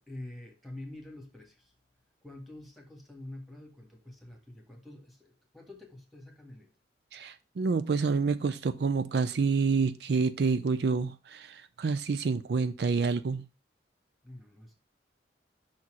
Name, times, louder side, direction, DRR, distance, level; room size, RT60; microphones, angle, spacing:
voice 1, 0.0-1.7 2.2-6.7 14.2-14.8, left 1 dB, ahead, 1.5 m, -47 dB
voice 2, 7.1-13.5, right 4 dB, 60° right, 0.4 m, -28 dB
5.9 x 4.1 x 6.1 m
head